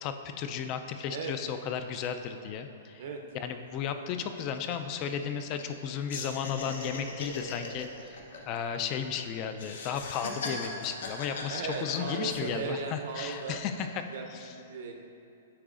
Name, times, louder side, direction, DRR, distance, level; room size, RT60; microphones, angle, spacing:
voice 1, 0.0-3.0 3.3-8.2 8.5-14.0 14.4-14.5, left 7 dB, 35° left, 8 dB, 0.3 m, -34 dB
sound 1, 3.3-3.4 3.7-3.9 4.2-5.8 6.1-9.2 9.5-12.7 13.1-13.7, left 3 dB, 80° left, 0.8 m, -39 dB
voice 2, 11.5-13.6 14.1-14.9, right 5 dB, 60° right, 3 dB, 0.6 m, -36 dB
8.7 x 4.7 x 2.5 m, 2.7 s
hypercardioid pair, 145°, 0 cm